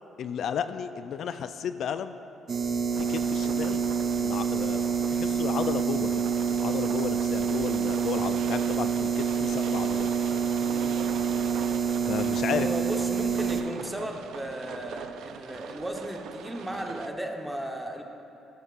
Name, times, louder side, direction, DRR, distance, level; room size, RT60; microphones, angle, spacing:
voice 1, 0.2-2.1 3.0-3.8 4.1-6.2 6.6-10.1 12.1-12.7, left 8 dB, 70° left, 11 dB, 0.4 m, -33 dB
sound 1, 2.5-13.6, right 6 dB, 50° right, 0.7 m, -27 dB
sound 2, 2.9-17.1, right 8 dB, 85° right, 0.4 m, -41 dB
voice 2, 12.3-18.0, right 1 dB, 5° right, 2 dB, 1.0 m, -35 dB
13.5 x 11.5 x 2.5 m, 2.8 s
cardioid pair, 90°, 0 cm